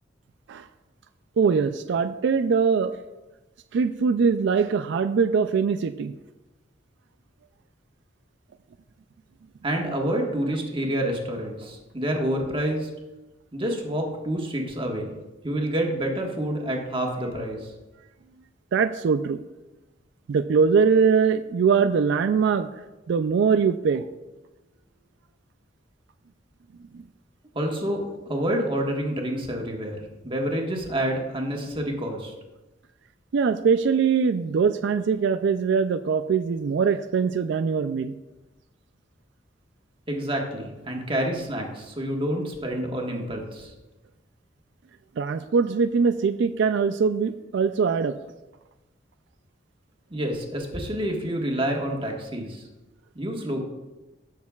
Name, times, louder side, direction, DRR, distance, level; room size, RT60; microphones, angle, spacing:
voice 1, 1.4-3.0 3.7-6.1 18.7-19.4 20.3-22.7 23.1-24.1 26.9-27.0 33.3-38.2 45.2-48.2, right 5 dB, 65° right, 10 dB, 0.3 m, -22 dB
voice 2, 9.6-12.9 13.5-15.1 15.4-17.7 27.5-32.3 40.1-43.7 50.1-52.6 53.1-53.6, right 1 dB, 30° right, 0 dB, 1.5 m, -28 dB
18.5 x 6.5 x 2.4 m, 1.1 s
head